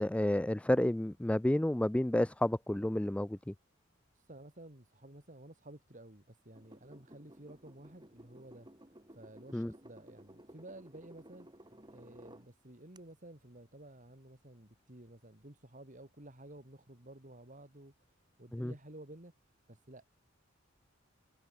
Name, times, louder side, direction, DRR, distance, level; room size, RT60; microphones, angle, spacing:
voice 1, 0.0-3.4 9.5-9.7 18.5-18.7, left 1 dB, 5° left, 0.4 m, -30 dB
voice 2, 4.1-8.7 9.1-19.3 19.7-20.1, right 1 dB, 40° right, 3.4 m, -53 dB
sound 1, 6.6-12.5 13.0-13.1, right 1 dB, 20° right, 6.3 m, -56 dB
head